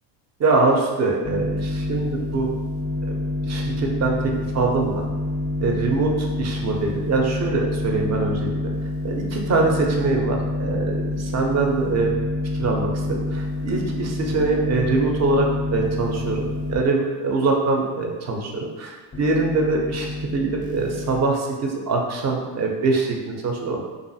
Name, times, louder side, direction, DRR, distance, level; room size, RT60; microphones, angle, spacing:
voice 1, 0.4-2.5 3.1-3.2 3.4-5.0 5.6-8.5 9.0-12.1 12.6-23.9, right 3 dB, 35° right, 1 dB, 0.5 m, -23 dB
sound 1, 1.2-16.8 19.1-21.2, left 2 dB, 15° left, 0.4 m, -27 dB
2.5 x 2.4 x 2.6 m, 1.3 s
supercardioid pair, 85°, 49 cm